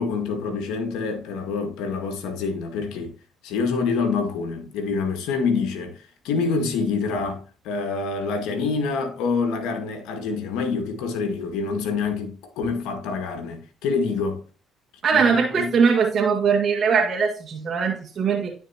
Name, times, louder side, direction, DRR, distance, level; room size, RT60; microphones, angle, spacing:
voice 1, 0.0-3.1 3.4-14.4 15.1-15.8, left 4 dB, 75° left, 1.8 m, -26 dB
voice 2, 15.0-18.5, right 5 dB, 50° right, 1.9 m, -21 dB
13.0 x 4.6 x 2.9 m
hypercardioid pair, 60°, 0 cm